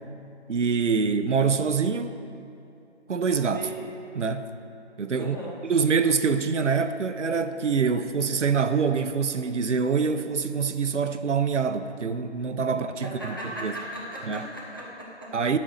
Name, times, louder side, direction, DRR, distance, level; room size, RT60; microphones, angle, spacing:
voice 1, 0.5-2.2 3.1-3.7 4.1-4.5 5.0-5.4 5.6-13.4 13.6-13.7 14.2-14.5 15.3-15.6, right 5 dB, 85° right, 10 dB, 0.7 m, -25 dB
voice 2, 5.2-5.6 12.7-15.3, right 1 dB, 20° left, -6 dB, 0.9 m, -37 dB
11.5 x 4.1 x 6.5 m, 2.6 s
figure-of-eight pair, 175°, 35 cm